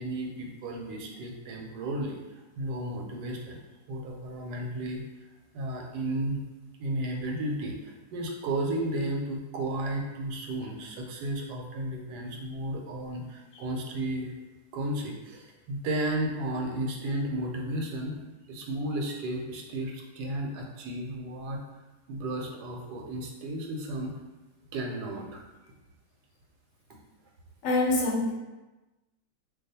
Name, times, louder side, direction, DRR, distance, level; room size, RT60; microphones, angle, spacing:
voice 1, 0.0-3.6 3.9-5.0 5.5-6.4 6.8-14.3 14.7-18.2 18.5-21.6 22.1-24.1 24.7-25.7, right 1 dB, 80° right, 0 dB, 1.1 m, -33 dB
voice 2, 27.6-28.3, left 2 dB, 60° left, -2 dB, 0.9 m, -25 dB
2.5 x 2.3 x 4.0 m, 1.1 s
omnidirectional pair, 1.8 m